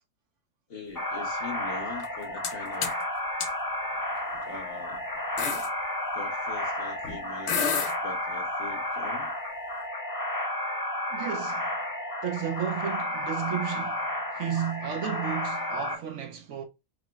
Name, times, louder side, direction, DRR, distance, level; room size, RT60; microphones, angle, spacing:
voice 1, 0.7-2.9 4.4-5.0 6.1-9.3, left 4 dB, 45° left, 1.1 m, -42 dB
sound 1, 0.9-16.0, left 1 dB, 20° left, 0.6 m, -32 dB
sound 2, 2.0-2.5 2.8-3.0 3.4-3.5 4.3-4.6 4.9-5.0 5.4-5.7 7.0-7.2 7.5-7.9, left 6 dB, 70° left, 1.0 m, -28 dB
voice 2, 11.1-11.7 12.2-14.1 14.3-16.6, right 9 dB, 70° right, 0.8 m, -33 dB
5.8 x 2.1 x 2.2 m
omnidirectional pair, 1.5 m